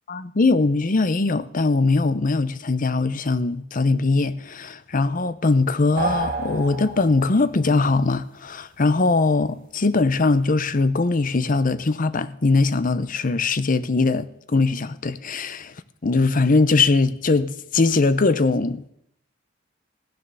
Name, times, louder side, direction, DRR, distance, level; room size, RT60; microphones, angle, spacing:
voice 1, 0.1-15.7 16.0-18.9, left 3 dB, 45° left, 0.7 m, -21 dB
sound 1, 6.0-7.5, right 3 dB, 45° right, 1.9 m, -28 dB
15.5 x 9.2 x 6.8 m
head